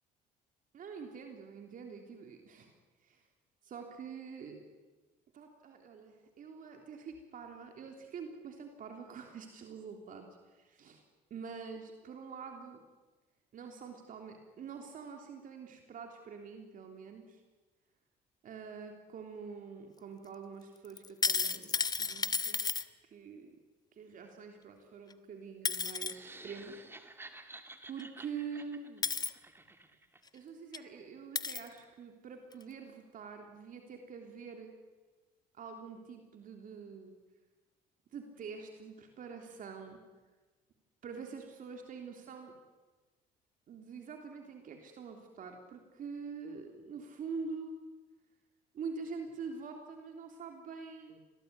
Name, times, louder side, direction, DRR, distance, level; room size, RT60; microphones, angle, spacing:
voice 1, 0.7-2.7 3.0-3.2 3.6-4.6 5.3-11.0 11.3-12.8 13.5-17.4 18.4-22.6 23.0-23.6 23.9-26.9 27.2-27.5 27.8-29.1 30.3-34.7 35.5-37.2 38.1-40.0 41.0-42.6 43.7-47.8 48.7-51.2, right 5 dB, 55° right, 4 dB, 3.4 m, -46 dB
sound 1, 21.0-22.8 25.1-25.2 25.7-26.1 28.0-28.1 29.0-29.3 30.3-30.4 30.7-30.8 31.4-31.7 32.5-32.6, left 4 dB, 25° left, 1.1 m, -32 dB
sound 2, 26.0-30.2, right 2 dB, 15° right, 2.4 m, -52 dB
26.0 x 19.0 x 9.6 m, 1.3 s
cardioid pair, 110°, 17 cm